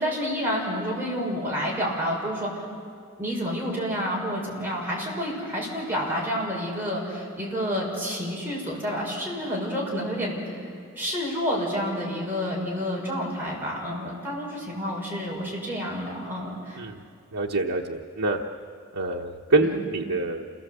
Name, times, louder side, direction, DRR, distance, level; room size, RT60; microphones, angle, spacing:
voice 1, 0.0-2.6 3.2-10.6 10.9-16.8 19.6-19.8 20.2-20.3, equal, 10° right, -5 dB, 5.9 m, -29 dB
voice 2, 17.3-18.4 18.9-20.5, right 2 dB, 85° right, -1 dB, 1.1 m, -26 dB
28.0 x 18.5 x 8.1 m, 2.3 s
head